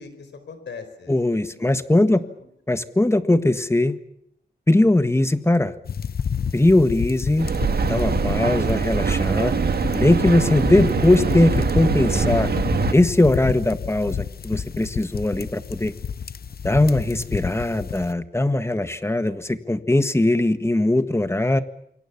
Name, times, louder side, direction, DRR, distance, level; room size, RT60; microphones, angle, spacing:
voice 1, 0.0-1.7 2.0-2.5, left 5 dB, 90° left, 10 dB, 4.8 m, -42 dB
voice 2, 1.1-2.2 2.7-4.0 4.7-5.7 6.5-7.5 7.8-9.5 9.9-12.5 12.9-15.9 16.6-21.6, left 1 dB, 15° left, 11 dB, 1.6 m, -20 dB
sound 1, 5.8-18.1, left 7 dB, 60° left, 0.9 m, -29 dB
Mechanical fan, 7.4-12.9, right 6 dB, 60° right, 1.7 m, -23 dB
27.5 x 23.0 x 7.3 m, 0.74 s
wide cardioid pair, 95°, 18 cm